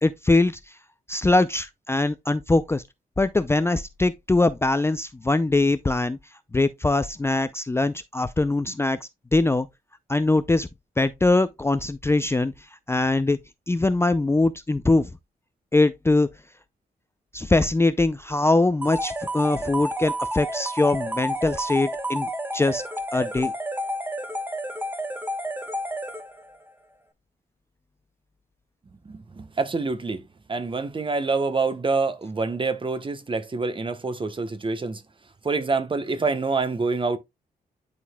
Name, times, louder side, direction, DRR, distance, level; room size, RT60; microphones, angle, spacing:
voice 1, 0.0-0.6 1.1-2.8 3.2-6.2 6.5-9.7 10.1-10.7 11.0-12.5 12.9-13.4 13.7-15.1 15.7-16.3 17.3-22.8 23.1-23.5, left 2 dB, 15° left, 0.4 m, -22 dB
sound 1, 18.8-26.6, right 1 dB, 10° right, 1.0 m, -30 dB
voice 2, 29.0-35.0 35.4-37.2, right 4 dB, 30° right, 1.0 m, -26 dB
11.0 x 4.0 x 2.2 m
cardioid pair, 85°, 16 cm